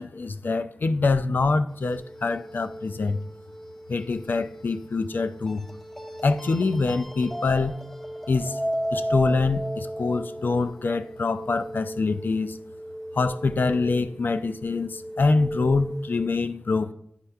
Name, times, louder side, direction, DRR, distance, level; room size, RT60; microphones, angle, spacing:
voice 1, 0.0-3.2 3.9-5.7 6.2-7.8 8.3-8.6 8.9-12.6 13.1-16.9, left 3 dB, 70° left, 0.4 m, -25 dB
sound 1, 1.8-16.3, equal, 10° left, 0.6 m, -35 dB
9.6 x 4.4 x 3.4 m
cardioid pair, 45°, 4 cm